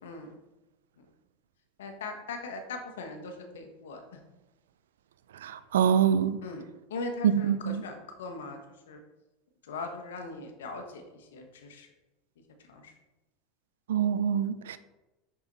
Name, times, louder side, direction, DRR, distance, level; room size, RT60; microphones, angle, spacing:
voice 1, 1.8-4.2 6.4-6.6 6.9-8.6 8.9-9.0 9.6-11.9 12.7-12.9, left 3 dB, 85° left, 1.3 m, -40 dB
voice 2, 5.4-6.4 7.2-7.8 13.9-14.8, right 8 dB, 85° right, 0.4 m, -25 dB
6.1 x 5.9 x 4.0 m
hypercardioid pair, 100°, 0 cm